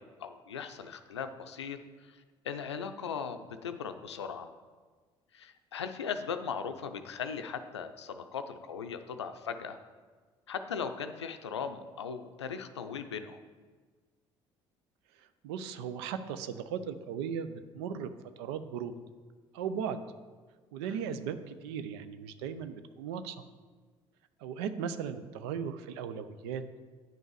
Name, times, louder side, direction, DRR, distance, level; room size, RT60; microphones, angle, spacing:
voice 1, 0.0-4.5 5.3-9.8 10.5-13.4 20.8-21.0, left 6 dB, 90° left, 9 dB, 0.5 m, -38 dB
voice 2, 15.2-18.1 18.4-18.9 19.5-20.0 20.7-23.4 24.4-26.6, right 7 dB, 75° right, 11 dB, 0.6 m, -37 dB
9.2 x 5.4 x 4.7 m, 1.5 s
hypercardioid pair, 55°, 14 cm